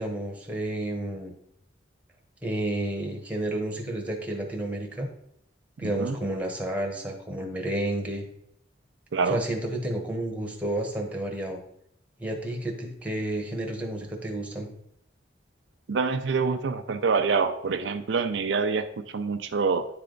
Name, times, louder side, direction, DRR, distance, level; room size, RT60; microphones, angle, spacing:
voice 1, 0.0-1.3 2.4-5.1 5.8-8.2 9.3-11.6 12.2-14.7, right 1 dB, 10° right, 1 dB, 1.1 m, -31 dB
voice 2, 5.8-6.2 9.1-9.4 15.9-19.9, right 5 dB, 80° right, 7 dB, 0.5 m, -26 dB
9.5 x 3.4 x 3.8 m, 0.73 s
head